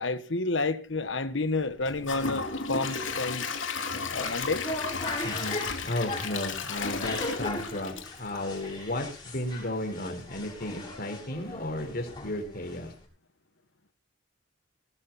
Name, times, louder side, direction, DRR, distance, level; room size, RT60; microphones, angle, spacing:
voice 1, 0.0-3.4 4.1-4.6, left 3 dB, 70° left, 1.3 m, -30 dB
Gurgling / Toilet flush / Trickle dribble, 1.8-8.9 9.3-9.4 9.9-10.0, left 4 dB, 85° left, 2.7 m, -34 dB
sound 1, 4.1-13.1, left 2 dB, 25° left, 7.3 m, -39 dB
voice 2, 5.2-12.9, left 1 dB, 50° left, 4.3 m, -34 dB
19.5 x 12.5 x 4.2 m
head